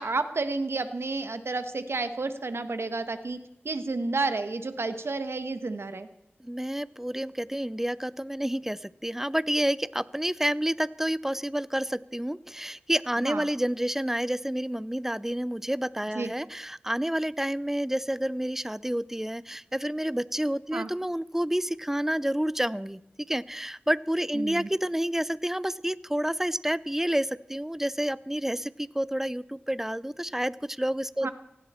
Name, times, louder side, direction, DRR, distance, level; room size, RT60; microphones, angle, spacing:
voice 1, 0.0-3.4 3.6-6.1 13.2-13.5 16.1-16.3 20.7-20.9 24.3-24.7 31.2-31.3, right 3 dB, 80° right, 10 dB, 1.3 m, -31 dB
voice 2, 6.4-23.0 23.3-31.3, equal, 10° right, 19 dB, 0.6 m, -29 dB
18.0 x 16.0 x 4.4 m, 0.85 s
wide cardioid pair, 45°, 4 cm